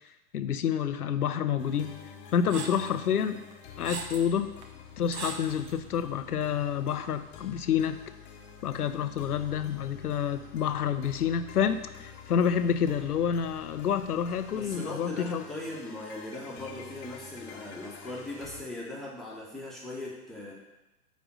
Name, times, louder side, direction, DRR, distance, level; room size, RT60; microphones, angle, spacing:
voice 1, 0.3-1.9 2.3-3.4 3.8-4.5 5.0-8.0 8.6-15.4, left 8 dB, 75° left, 10 dB, 0.7 m, -28 dB
sound 1, 1.6-18.6, left 7 dB, 35° left, 1.2 m, -48 dB
sound 2, 2.5-2.9 3.5-4.3 4.6-4.7 5.1-5.8, right 5 dB, 45° right, 1.1 m, -39 dB
voice 2, 14.5-20.5, left 2 dB, ahead, -5 dB, 1.6 m, -39 dB
9.1 x 3.5 x 6.3 m, 1.0 s
figure-of-eight pair, 110°, 46 cm